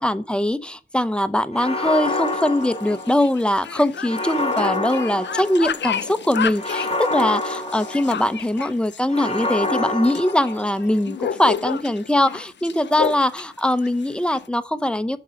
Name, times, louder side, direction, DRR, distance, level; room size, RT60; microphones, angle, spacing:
voice 1, 0.0-15.2, left 1 dB, 5° left, 0.6 m, -22 dB
sound 1, 1.5-3.4 4.0-5.9 6.6-8.4 9.1-11.0, left 2 dB, 35° left, 1.4 m, -27 dB
sound 2, 2.0-14.5, left 8 dB, 80° left, 0.5 m, -31 dB
6.6 x 5.3 x 5.3 m
wide cardioid pair, 55°, 18 cm